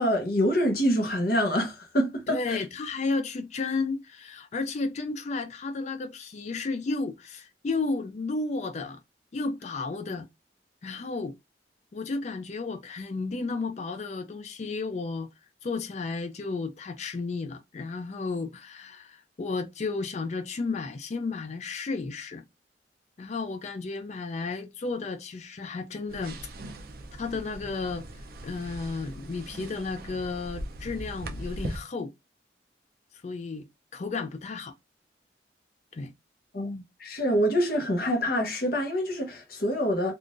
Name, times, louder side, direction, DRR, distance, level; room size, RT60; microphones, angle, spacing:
voice 1, 0.0-2.6 36.5-40.1, equal, 55° left, 0.9 m, -26 dB
voice 2, 2.3-9.0 9.3-10.3 10.8-11.3 11.9-15.3 15.6-22.4 23.2-26.4 27.2-28.1 28.4-32.1 33.2-34.7 35.9-36.1, left 3 dB, 40° left, 0.4 m, -33 dB
sound 1, 26.1-31.8, right 1 dB, 55° right, 0.5 m, -40 dB
3.6 x 2.4 x 2.5 m
head